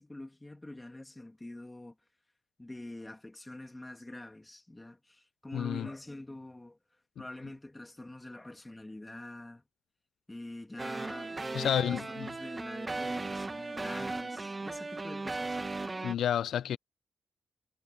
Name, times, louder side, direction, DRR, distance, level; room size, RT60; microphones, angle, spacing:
voice 1, 0.0-2.0 2.6-6.8 7.2-9.6 10.3-15.6, left 1 dB, 10° left, 2.2 m, -45 dB
voice 2, 5.5-5.9 11.5-12.3 16.0-16.8, left 10 dB, 85° left, 0.4 m, -30 dB
sound 1, 10.8-16.1, right 3 dB, 20° right, 1.2 m, -37 dB
wide cardioid pair, 155°, 0 cm